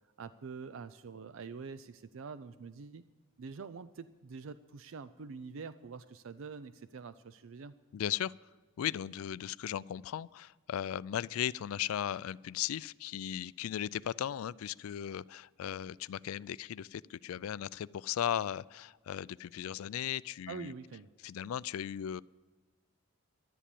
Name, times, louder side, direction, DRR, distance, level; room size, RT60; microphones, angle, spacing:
voice 1, 0.2-3.0 3.4-7.7 20.5-21.1, right 5 dB, 70° right, 14 dB, 0.4 m, -45 dB
voice 2, 7.9-8.3 8.8-20.7 21.2-22.2, left 10 dB, 85° left, 20 dB, 0.3 m, -37 dB
12.0 x 10.0 x 8.4 m, 1.3 s
head